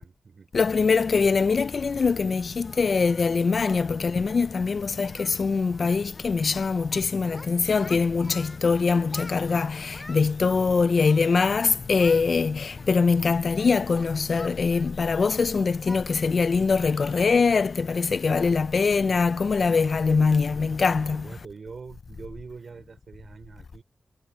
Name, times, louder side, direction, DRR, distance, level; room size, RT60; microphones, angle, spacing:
voice 1, 0.0-0.5 10.5-11.0 18.2-18.6 21.1-23.8, right 5 dB, 65° right, 4.8 m, -44 dB
voice 2, 0.5-5.1 5.4-21.2, left 4 dB, 65° left, 0.5 m, -23 dB
Singing, 2.6-3.9 4.1-4.3 4.6-4.8 5.0-5.4 5.7-5.9 6.1-7.0 7.3-8.6 9.1-10.3 11.0-11.6 12.0-12.3 12.8-15.4 15.9-16.1 16.4-16.6 17.0-17.1 17.6-17.9, left 1 dB, 20° left, 6.9 m, -47 dB
cardioid pair, 55°, 0 cm